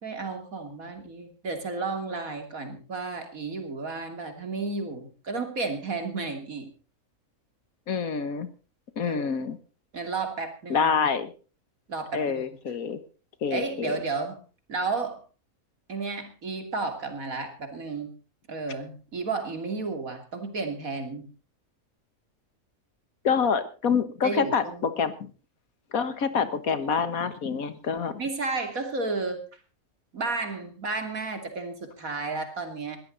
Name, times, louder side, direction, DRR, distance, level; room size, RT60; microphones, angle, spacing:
voice 1, 0.0-6.7 9.0-9.2 9.9-10.9 11.9-12.4 13.5-14.4 14.7-15.2 15.9-18.1 18.5-21.3 24.2-24.9 28.2-29.5 30.1-33.0, right 3 dB, 70° right, 6 dB, 3.3 m, -32 dB
voice 2, 7.9-8.5 9.0-9.6 10.7-11.3 12.1-13.0 13.4-13.9 23.2-25.1 25.9-28.2, left 6 dB, 75° left, 12 dB, 1.9 m, -26 dB
20.0 x 14.0 x 4.0 m, 0.36 s
omnidirectional pair, 1.5 m